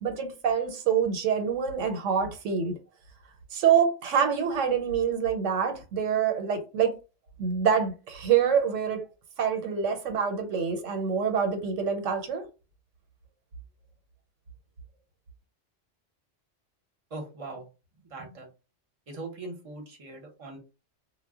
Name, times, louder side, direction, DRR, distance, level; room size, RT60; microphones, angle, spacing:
voice 1, 0.0-2.7 3.5-6.9 7.4-9.0 9.4-12.4, right 7 dB, 85° right, 1.0 m, -26 dB
voice 2, 17.1-17.6 18.1-18.5 19.1-20.6, right 2 dB, 35° right, 0.7 m, -40 dB
2.1 x 2.0 x 3.5 m
omnidirectional pair, 1.3 m